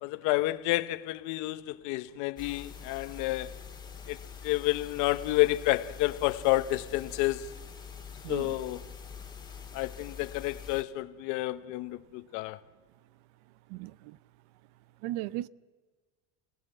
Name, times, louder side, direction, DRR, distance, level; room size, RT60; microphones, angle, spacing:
voice 1, 0.0-3.6 4.1-4.2 4.4-7.5 8.3-8.8 9.7-12.6, left 18 dB, 60° left, 0.9 m, -30 dB
sound 1, 2.4-10.8, left 7 dB, 15° left, 1.7 m, -45 dB
voice 2, 8.2-8.6 13.7-14.2 15.0-15.5, right 16 dB, 80° right, 0.8 m, -36 dB
30.0 x 18.5 x 7.9 m
cardioid pair, 165°, 34 cm